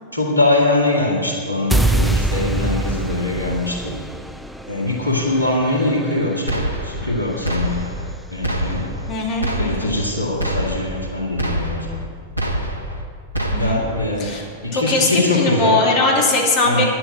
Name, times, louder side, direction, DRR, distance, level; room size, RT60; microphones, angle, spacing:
voice 1, 0.1-3.9 4.6-8.0 8.3-8.9 9.6-11.9 13.6-15.8 16.6-16.8, left 2 dB, 90° right, -3 dB, 2.2 m, -22 dB
sound 1, 1.7-7.9, right 2 dB, ahead, 0.5 m, -25 dB
sound 2, 6.5-7.2 7.4-8.1 8.4-9.1 9.4-10.1 10.4-11.1 11.4-12.1 12.4-13.1 13.3-14.0, right 1 dB, 90° left, 1.2 m, -25 dB
voice 2, 9.1-10.0 13.5-13.8 14.2-14.5 14.7-16.9, left 2 dB, 40° left, 0 dB, 2.5 m, -20 dB
10.0 x 7.6 x 9.0 m, 2.1 s
figure-of-eight pair, 90°, 0 cm